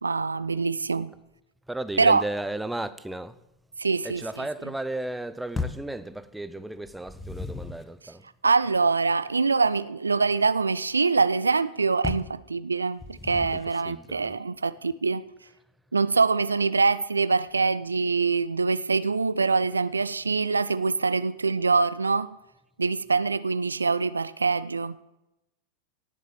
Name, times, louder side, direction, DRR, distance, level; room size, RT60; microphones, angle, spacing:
voice 1, 0.0-1.1 2.0-2.2 3.8-4.4 8.4-15.2 15.9-22.3 22.8-25.0, right 4 dB, 75° right, 0.5 m, -24 dB
voice 2, 1.7-3.4 4.0-8.3 13.5-14.3, right 1 dB, 5° right, 0.7 m, -34 dB
sound 1, 5.5-5.9 6.8-7.9 12.0-12.4 13.0-13.7, left 4 dB, 10° left, 1.0 m, -34 dB
18.0 x 7.3 x 7.0 m
figure-of-eight pair, 90°, 0 cm